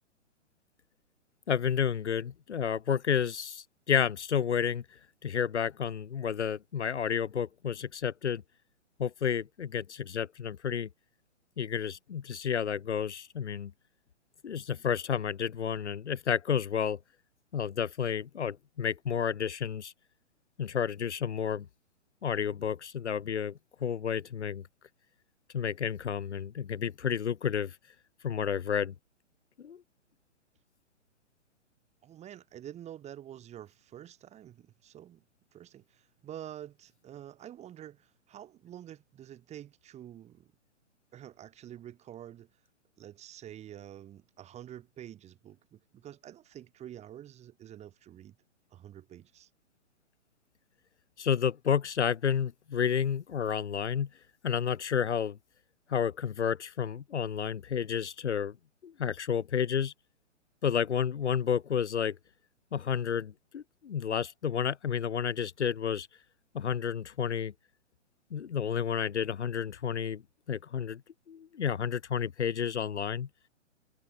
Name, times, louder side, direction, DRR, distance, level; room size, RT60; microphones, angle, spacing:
voice 1, 1.5-8.4 9.0-10.9 11.6-13.7 14.4-17.0 17.5-19.9 20.6-21.7 22.2-24.6 25.5-27.8 28.2-28.9 29.6-29.8 51.2-54.1 54.4-55.4 55.9-58.6 58.8-59.9 60.6-62.2 62.7-66.1 66.5-67.5 68.3-70.2 70.5-71.0 71.3-73.3, left 8 dB, 60° left, 1.2 m, -31 dB
voice 2, 32.0-35.2 35.5-40.5 41.1-42.5 43.0-48.4 48.7-49.5, right 11 dB, 15° right, 5.6 m, -48 dB
figure-of-eight pair, 125°, 38 cm